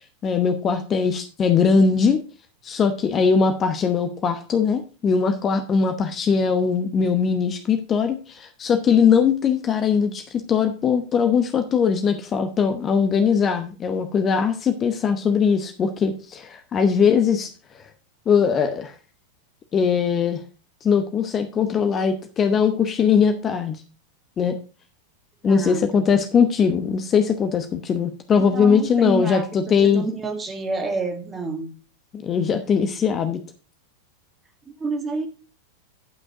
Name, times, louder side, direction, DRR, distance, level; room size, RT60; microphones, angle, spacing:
voice 1, 0.0-2.2 2.6-17.5 18.3-18.9 19.7-20.4 20.8-23.8 24.4-24.6 25.4-30.0 32.1-33.4, left 6 dB, 25° left, 8 dB, 0.9 m, -20 dB
voice 2, 25.4-26.0 28.4-29.5 29.8-31.7 34.8-35.3, right 3 dB, 15° right, 6 dB, 1.9 m, -29 dB
10.5 x 6.2 x 4.9 m, 0.35 s
figure-of-eight pair, 90°, 0 cm